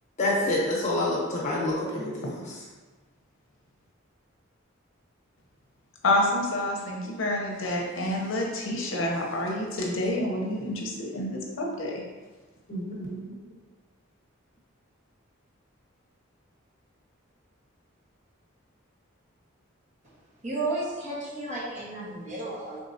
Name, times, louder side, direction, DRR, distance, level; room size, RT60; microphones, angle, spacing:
voice 1, 0.2-2.3 12.7-13.4, left 1 dB, 35° left, -5 dB, 1.0 m, -28 dB
voice 2, 6.0-12.0, left 1 dB, 70° left, -1 dB, 0.7 m, -28 dB
voice 3, 20.4-22.8, right 2 dB, 35° right, -7 dB, 1.2 m, -32 dB
4.6 x 3.5 x 2.7 m, 1.3 s
head